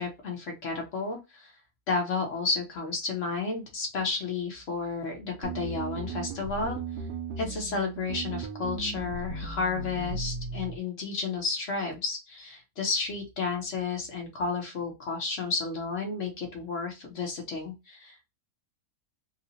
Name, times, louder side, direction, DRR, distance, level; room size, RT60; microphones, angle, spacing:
voice 1, 0.0-1.5 1.9-6.8 7.4-18.3, left 4 dB, 45° left, 2 dB, 1.2 m, -32 dB
sound 1, 5.4-10.8, right 4 dB, 80° right, 1.3 m, -36 dB
4.0 x 2.4 x 2.7 m, 0.24 s
omnidirectional pair, 2.0 m